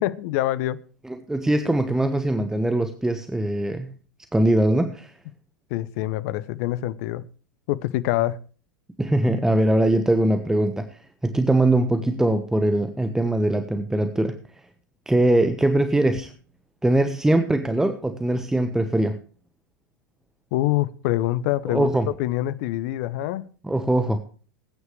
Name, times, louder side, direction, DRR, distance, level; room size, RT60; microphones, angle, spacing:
voice 1, 0.0-0.8 5.7-7.2 7.7-8.4 20.5-21.9 22.2-23.5, left 15 dB, 50° left, 0.9 m, -25 dB
voice 2, 1.0-4.0 4.3-5.1 9.0-14.4 15.1-16.3 16.8-19.1 21.7-22.1 23.6-24.2, right 1 dB, 5° right, 1.1 m, -22 dB
20.0 x 9.7 x 3.2 m
figure-of-eight pair, 90°, 10 cm